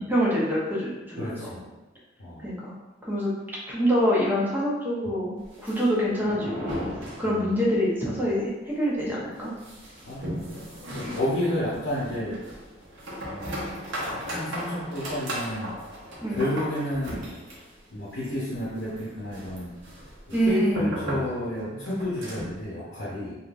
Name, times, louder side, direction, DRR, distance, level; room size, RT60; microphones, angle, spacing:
voice 1, 0.1-1.6 2.4-2.7 3.0-3.3 3.7-6.9 7.2-9.5 16.2-16.4 20.3-20.9, equal, 10° right, -6 dB, 0.8 m, -25 dB
voice 2, 1.2-1.6 2.2-2.5 7.2-7.5 10.1-10.4 10.9-12.4 13.3-13.6 14.0-15.7 16.3-17.3 17.9-19.7 20.4-23.4, left 1 dB, 80° left, -8 dB, 0.8 m, -31 dB
sound 1, 5.4-7.8 8.0-8.1 8.5-8.6 9.0-22.6, equal, 70° right, 0.8 m, -37 dB
3.4 x 2.6 x 2.4 m, 1.1 s
head